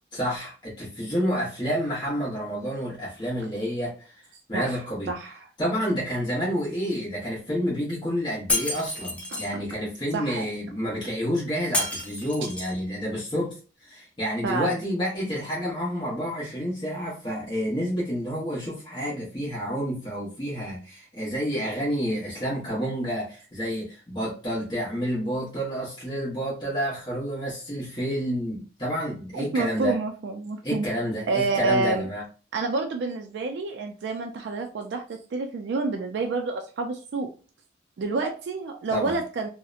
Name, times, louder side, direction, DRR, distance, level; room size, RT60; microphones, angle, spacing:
voice 1, 0.1-4.2 4.5-5.1 5.6-30.0 30.6-32.2 38.9-39.1, equal, 25° left, -7 dB, 0.9 m, -29 dB
voice 2, 5.1-5.5 9.3-9.6 10.1-10.5 14.4-14.8 29.3-30.9 31.3-32.1 32.5-37.3 38.0-39.5, right 3 dB, 75° right, 4 dB, 0.3 m, -28 dB
Shatter, 8.5-9.5 11.7-12.8, left 1 dB, 5° left, 0.5 m, -29 dB
2.7 x 2.1 x 2.4 m, 0.37 s
head